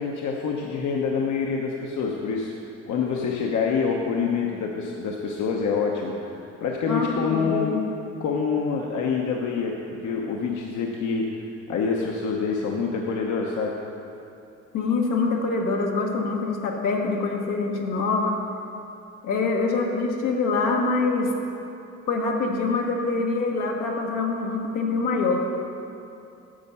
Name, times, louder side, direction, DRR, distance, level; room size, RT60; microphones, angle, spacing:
voice 1, 0.0-7.8 8.2-11.3 11.7-13.7, left 5 dB, 75° left, 0 dB, 0.9 m, -26 dB
voice 2, 6.9-7.8 14.7-18.4 19.2-21.3 22.1-25.5, left 3 dB, 90° left, 0 dB, 1.4 m, -25 dB
10.0 x 7.3 x 5.6 m, 2.8 s
cardioid pair, 90°, 30 cm